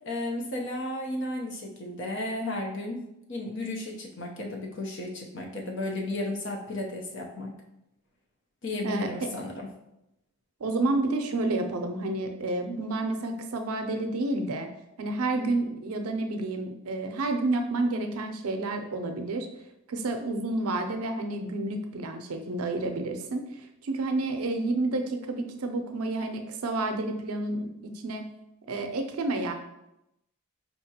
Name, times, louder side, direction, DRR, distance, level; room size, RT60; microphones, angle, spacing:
voice 1, 0.0-3.0 3.3-7.5 8.6-9.7, left 1 dB, 55° left, -1 dB, 0.7 m, -33 dB
voice 2, 8.8-9.3 10.6-14.7 15.0-19.5 19.9-23.4 23.8-27.7 28.0-28.3 28.7-29.5, right 2 dB, 85° right, 5 dB, 0.5 m, -30 dB
4.6 x 2.9 x 2.8 m, 0.87 s
head